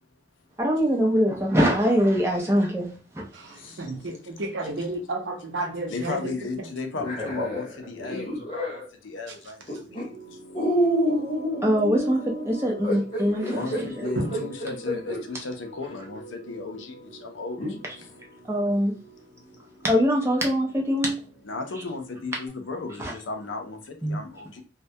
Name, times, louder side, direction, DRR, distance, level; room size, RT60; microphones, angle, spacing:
voice 1, 0.6-3.2 11.6-14.0 18.5-18.9 19.8-21.1 23.0-23.1 24.0-24.2, equal, 15° right, 0.5 m, -23 dB
voice 2, 3.3-6.2 14.2-14.4, right 2 dB, 80° right, 0.6 m, -31 dB
voice 3, 5.9-10.1 13.5-17.6 21.4-24.6, left 3 dB, 85° left, 0.5 m, -35 dB
sound 1, 7.0-8.9 9.7-10.0 10.5-15.2 15.9-16.0 17.6-17.8, equal, 25° left, 0.9 m, -28 dB
sound 2, 9.9-22.5, equal, 35° right, 0.9 m, -47 dB
2.2 x 2.1 x 2.6 m
head